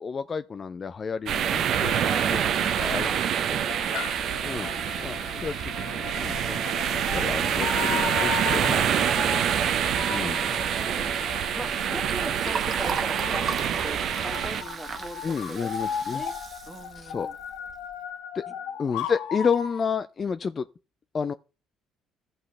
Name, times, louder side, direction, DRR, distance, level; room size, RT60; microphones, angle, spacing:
voice 1, 0.0-2.0 2.8-3.1 4.4-4.7 5.0-8.8 10.1-10.4 15.2-16.2 17.0-17.3 18.3-18.4 18.8-20.7 21.1-21.3, left 6 dB, 40° left, 0.4 m, -30 dB
sound 1, 1.3-14.6, right 9 dB, 60° right, 0.7 m, -26 dB
voice 2, 2.0-3.9 4.3-5.4 10.2-16.3 16.7-17.4 18.5-18.6, right 1 dB, 10° right, 1.7 m, -41 dB
sound 2, 3.7-19.8, left 9 dB, 80° left, 0.8 m, -36 dB
Liquid, 11.3-17.9, right 5 dB, 45° right, 1.3 m, -37 dB
14.5 x 5.5 x 3.3 m
hypercardioid pair, 60°, 0 cm